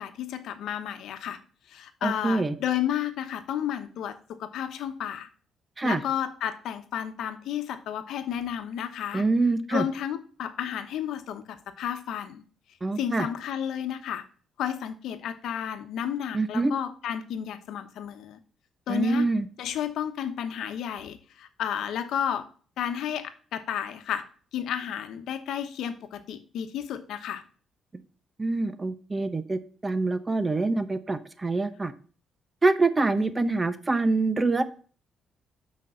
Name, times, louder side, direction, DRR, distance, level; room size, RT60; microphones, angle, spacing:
voice 1, 0.0-1.4 1.7-5.3 5.8-9.2 9.7-12.4 13.0-14.2 14.6-18.4 18.9-19.3 19.6-22.5 22.8-24.3 24.5-27.4 33.2-33.6, left 9 dB, 80° left, 9 dB, 1.0 m, -32 dB
voice 2, 2.0-2.5 5.8-6.0 9.1-9.8 12.8-13.3 16.3-16.7 18.9-19.5 28.4-31.9 32.6-34.6, right 3 dB, 20° right, 12 dB, 0.9 m, -25 dB
6.2 x 5.3 x 5.7 m, 0.41 s
cardioid pair, 90°, 0 cm